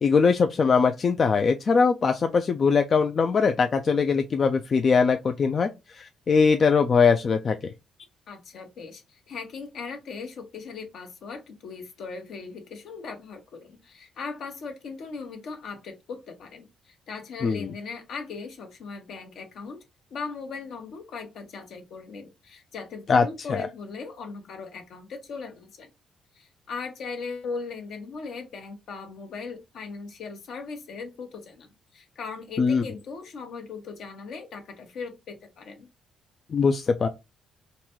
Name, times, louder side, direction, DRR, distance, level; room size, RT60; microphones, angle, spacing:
voice 1, 0.0-7.6 17.4-17.7 23.1-23.2 23.5-23.7 32.6-32.8 36.5-37.1, left 5 dB, 45° left, 0.3 m, -21 dB
voice 2, 8.3-19.8 20.1-25.9 26.3-35.9, left 4 dB, 70° left, 1.0 m, -38 dB
3.8 x 2.2 x 2.9 m
cardioid pair, 90°, 0 cm